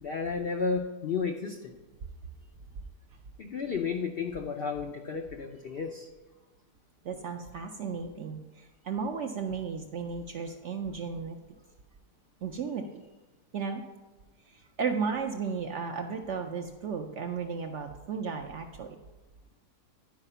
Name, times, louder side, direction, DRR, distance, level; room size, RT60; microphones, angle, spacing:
voice 1, 0.0-1.7 3.4-6.1, left 5 dB, 80° left, 3 dB, 0.5 m, -32 dB
voice 2, 7.0-11.4 12.4-13.0 13.5-13.8 14.5-19.0, right 5 dB, 65° right, 4 dB, 0.7 m, -34 dB
10.5 x 4.9 x 5.5 m, 1.1 s
omnidirectional pair, 1.7 m